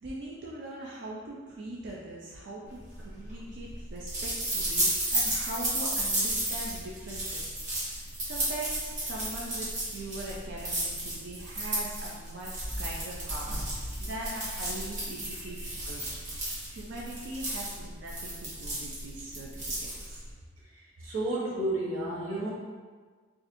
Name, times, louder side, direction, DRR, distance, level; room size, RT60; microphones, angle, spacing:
voice 1, 0.0-7.9 8.2-16.2 16.7-19.5 19.8-20.2 21.0-21.1, right 1 dB, 60° right, -4 dB, 0.4 m, -41 dB
sound 1, 2.9-20.3, right 1 dB, 35° right, 1.0 m, -33 dB
voice 2, 20.7-22.5, right 1 dB, 85° right, -6 dB, 0.9 m, -32 dB
4.2 x 2.4 x 2.5 m, 1.5 s
head